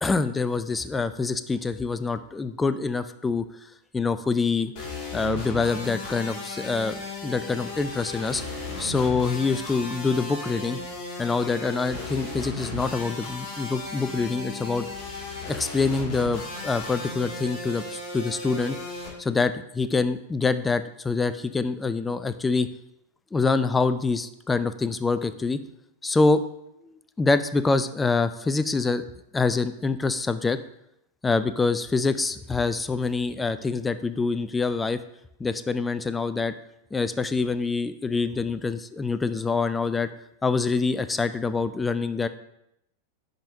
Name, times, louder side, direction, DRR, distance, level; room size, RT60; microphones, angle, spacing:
voice 1, 0.0-3.4 3.9-4.7 5.1-8.4 8.8-10.8 11.2-14.9 15.5-18.8 19.2-22.7 23.3-25.6 26.0-26.4 27.2-29.0 29.3-30.6 31.2-35.0 35.4-36.5 36.9-40.1 40.4-42.3, left 4 dB, 10° left, 12 dB, 0.3 m, -25 dB
sound 1, 4.8-19.1, left 2 dB, 40° left, 2.2 m, -35 dB
10.0 x 3.9 x 2.7 m, 0.81 s
figure-of-eight pair, 90°, 0 cm